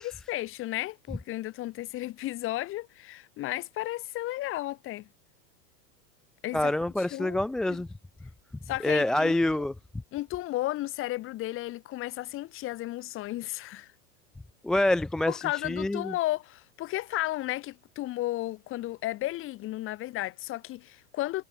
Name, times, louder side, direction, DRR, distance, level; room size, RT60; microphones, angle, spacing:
voice 1, 0.0-5.1 6.4-6.7 7.1-7.4 7.7-7.8 8.7-9.4 10.1-13.9 15.3-21.4, left 16 dB, 25° left, 7.8 m, -33 dB
voice 2, 6.5-7.9 8.8-9.7 14.6-16.1, left 1 dB, ahead, 0.5 m, -26 dB
supercardioid pair, 165°, 48 cm